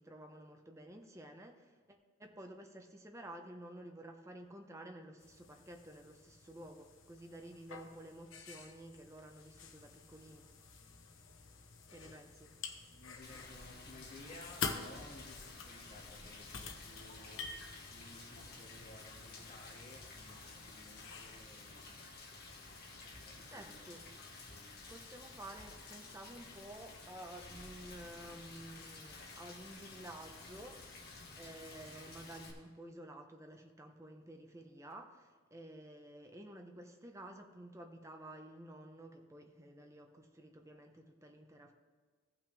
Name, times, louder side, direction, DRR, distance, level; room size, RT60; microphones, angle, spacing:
voice 1, 0.0-10.5 11.9-12.5 23.5-24.0 24.9-31.1 31.3-41.7, right 1 dB, 15° right, 4 dB, 0.7 m, -52 dB
sound 1, 5.2-21.4, left 5 dB, 70° left, 0.8 m, -49 dB
voice 2, 12.9-21.8 23.0-24.7, left 1 dB, 35° left, -2 dB, 1.8 m, -57 dB
Rain, 13.2-32.5, left 3 dB, 50° left, 1.3 m, -52 dB
15.5 x 6.0 x 3.4 m, 1.5 s
head